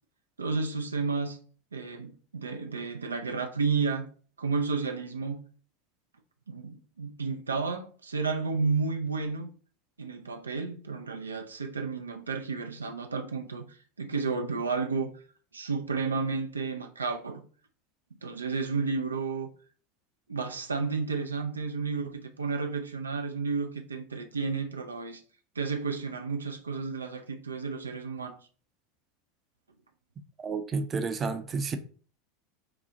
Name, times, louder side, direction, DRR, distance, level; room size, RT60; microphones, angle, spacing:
voice 1, 0.4-1.4 1.7-4.1 4.4-5.4 6.5-9.5 10.0-15.1 15.5-17.4 18.2-19.5 20.3-25.2 25.6-28.4, right 4 dB, 90° right, 0.4 m, -32 dB
voice 2, 30.4-31.8, right 4 dB, 30° right, 0.5 m, -31 dB
3.8 x 2.3 x 3.9 m
hypercardioid pair, 85°, 0 cm